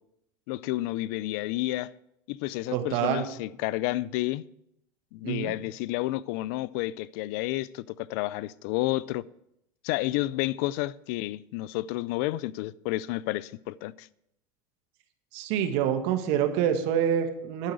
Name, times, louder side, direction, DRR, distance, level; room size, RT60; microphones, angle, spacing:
voice 1, 0.5-1.9 2.3-4.4 5.1-9.2 9.8-14.1, left 17 dB, 70° left, 0.4 m, -30 dB
voice 2, 2.7-3.3 5.2-5.5 15.3-17.7, right 9 dB, 70° right, 1.5 m, -26 dB
11.5 x 4.9 x 7.9 m
supercardioid pair, 110°, 10 cm